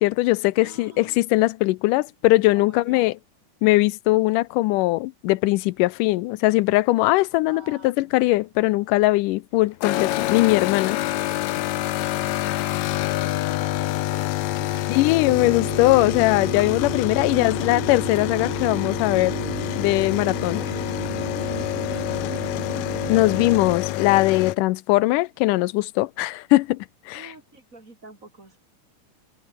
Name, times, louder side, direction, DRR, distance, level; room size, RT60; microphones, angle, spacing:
voice 1, 0.0-3.1 3.6-11.0 14.9-19.3 19.8-20.6 23.1-27.3, left 19 dB, 90° left, 2.2 m, -20 dB
voice 2, 0.6-1.3 2.5-3.1 7.5-8.2 12.4-14.9 17.0-17.9 20.5-20.7 21.7-22.8 27.1-28.6, right 2 dB, 25° right, 3.9 m, -46 dB
sound 1, 9.8-24.6, left 15 dB, 75° left, 2.1 m, -27 dB
sound 2, 15.3-23.8, right 20 dB, 85° right, 2.2 m, -35 dB
omnidirectional pair, 3.7 m